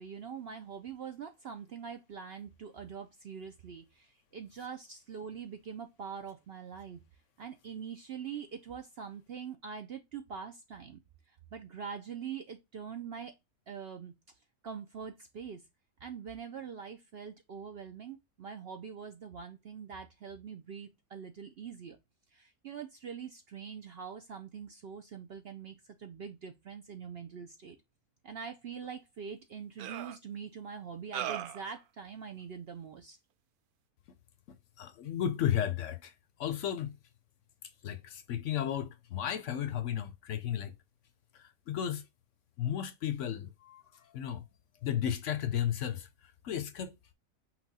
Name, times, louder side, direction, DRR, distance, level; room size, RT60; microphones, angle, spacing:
voice 1, 0.0-7.0 7.4-11.0 11.3-13.3 13.7-14.1 14.6-15.6 16.0-22.0 22.3-27.8 28.2-33.2, right 7 dB, 60° right, 0.6 m, -44 dB
sound 1, 28.8-28.9 29.8-30.2 31.1-31.7, right 10 dB, 85° right, 1.1 m, -37 dB
voice 2, 34.8-36.1 36.4-37.0 37.8-40.7 41.3-42.0 42.6-43.8 44.1-44.4 44.8-46.1 46.4-46.9, left 10 dB, 65° left, 0.9 m, -33 dB
5.8 x 2.3 x 4.0 m
omnidirectional pair, 1.5 m